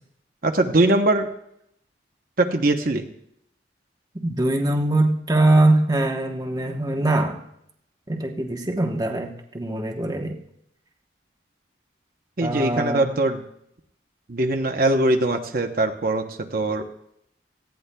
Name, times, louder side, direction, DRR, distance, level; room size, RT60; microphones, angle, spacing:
voice 1, 0.4-1.3 2.4-3.1 12.4-13.4 14.3-16.2 16.5-16.8, right 2 dB, 50° right, 4 dB, 0.8 m, -21 dB
voice 2, 4.2-7.4 8.1-10.4 12.4-13.1, right 2 dB, 20° right, 2 dB, 1.0 m, -22 dB
18.0 x 15.5 x 2.2 m, 0.76 s
head